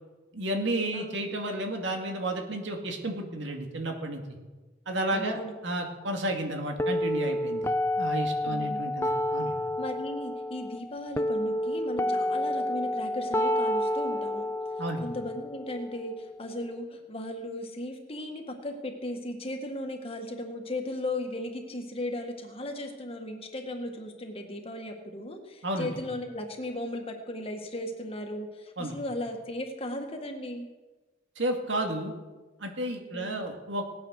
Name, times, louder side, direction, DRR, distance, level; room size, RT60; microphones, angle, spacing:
voice 1, 0.3-4.2 4.9-9.5 14.8-15.1 25.6-25.9 28.8-29.0 31.4-32.1 32.6-33.8, right 1 dB, 70° right, 3 dB, 2.3 m, -32 dB
voice 2, 5.1-5.5 8.4-9.0 9.8-14.5 15.0-30.7 33.1-33.5, left 1 dB, 30° left, 4 dB, 1.8 m, -36 dB
sound 1, 6.8-16.8, left 1 dB, 15° left, 0.4 m, -30 dB
18.5 x 9.4 x 6.5 m, 1.2 s
head